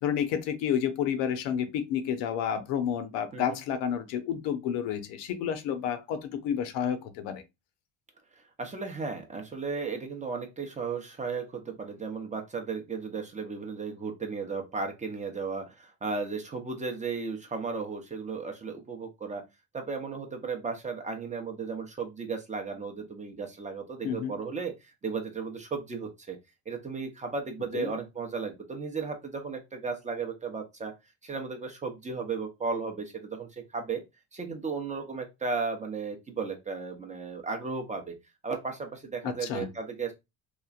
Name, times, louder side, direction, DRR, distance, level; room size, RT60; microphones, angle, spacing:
voice 1, 0.0-7.4 24.0-24.3 27.7-27.9 39.2-39.7, left 8 dB, 70° left, 0.8 m, -30 dB
voice 2, 8.4-19.4 19.7-26.4 26.7-30.9 31.2-34.0 34.3-38.1 38.4-40.1, right 4 dB, 15° right, 0.6 m, -35 dB
3.0 x 2.4 x 2.4 m
supercardioid pair, 110°, 43 cm